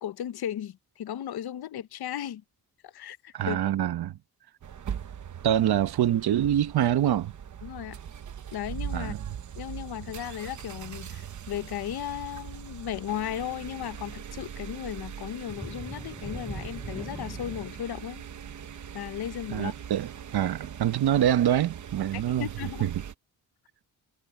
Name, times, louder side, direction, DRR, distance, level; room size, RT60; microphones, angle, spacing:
voice 1, 0.0-2.4 2.8-3.6 7.6-8.0 8.5-9.2 9.6-18.2 18.9-19.7 22.1-22.9, left 11 dB, 75° left, 0.9 m, -36 dB
voice 2, 3.3-4.1 5.4-7.3 8.9-9.2 19.5-22.5 22.8-23.0, right 11 dB, 75° right, 1.0 m, -25 dB
sound 1, 4.6-23.1, right 8 dB, 50° right, 0.9 m, -41 dB
sound 2, 15.4-20.9 21.3-21.5 22.0-22.1, right 1 dB, 5° right, 0.5 m, -43 dB
wide cardioid pair, 170°, 38 cm